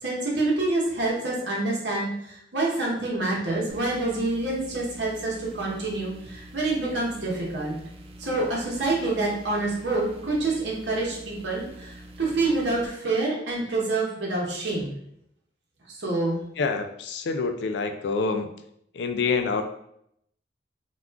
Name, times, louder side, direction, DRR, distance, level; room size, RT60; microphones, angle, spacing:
voice 1, 0.0-7.8 8.2-15.0 15.9-16.5, right 2 dB, 80° right, -4 dB, 1.0 m, -27 dB
sound 1, 3.7-12.9, right 1 dB, 30° right, 0.3 m, -45 dB
voice 2, 16.6-18.5 18.9-19.6, left 4 dB, 75° left, 6 dB, 0.3 m, -26 dB
3.6 x 2.3 x 2.3 m, 0.74 s
head